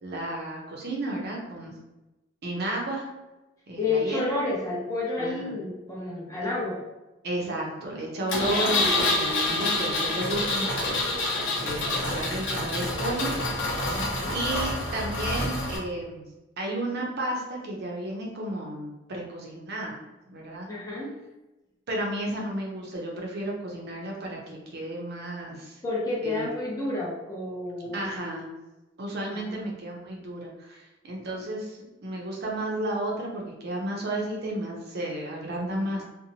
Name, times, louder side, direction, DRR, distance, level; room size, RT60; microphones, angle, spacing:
voice 1, 0.0-1.7 2.4-3.1 3.7-4.4 5.2-5.5 7.2-11.0 11.3-13.3 14.3-16.2 16.6-20.0 20.3-20.7 21.9-25.8 26.2-26.5 27.9-28.5 29.0-36.0, right 1 dB, 55° right, -1 dB, 0.6 m, -32 dB
voice 2, 3.8-6.8 13.9-14.3 20.7-21.1 25.8-28.0 29.3-29.6, left 3 dB, 20° left, -5 dB, 0.7 m, -30 dB
Engine, 8.3-15.8, left 2 dB, 65° left, 0.6 m, -27 dB
2.7 x 2.1 x 2.7 m, 1.0 s
head